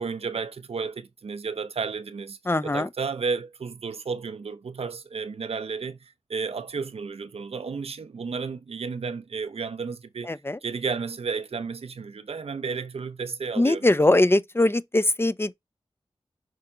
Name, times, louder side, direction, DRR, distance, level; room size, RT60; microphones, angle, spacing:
voice 1, 0.0-10.3 10.6-13.9, right 5 dB, 80° right, 0.7 m, -32 dB
voice 2, 2.5-2.9 10.3-10.6 13.6-15.5, left 2 dB, 25° left, 0.7 m, -21 dB
6.4 x 4.4 x 3.8 m
cardioid pair, 50°, 10 cm